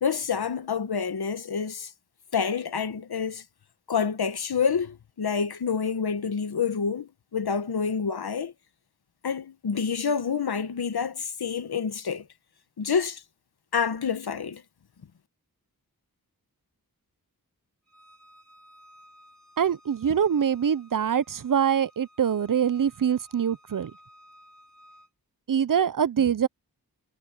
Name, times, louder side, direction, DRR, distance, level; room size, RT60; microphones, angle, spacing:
voice 1, 0.0-1.9 2.3-3.4 3.9-8.5 9.2-12.2 12.8-13.2 13.7-14.6, left 6 dB, 85° left, 1.2 m, -28 dB
Bowed string instrument, 17.9-25.1, equal, 50° left, 5.6 m, -56 dB
voice 2, 19.6-23.9 25.5-26.5, right 8 dB, 60° right, 0.6 m, -24 dB
wide cardioid pair, 65°, 37 cm